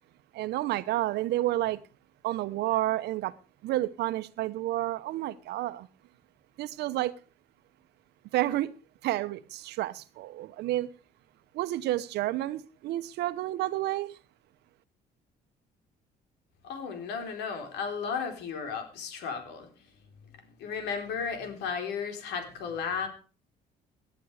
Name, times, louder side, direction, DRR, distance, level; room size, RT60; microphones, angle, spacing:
voice 1, 0.3-1.8 2.2-3.3 3.6-5.9 6.6-7.2 8.3-8.7 9.0-10.9 11.5-14.2, right 15 dB, 80° right, 1.0 m, -30 dB
voice 2, 16.6-19.7 20.6-23.1, left 6 dB, 85° left, 4.4 m, -34 dB
18.0 x 11.0 x 5.0 m
cardioid pair, 110°, 17 cm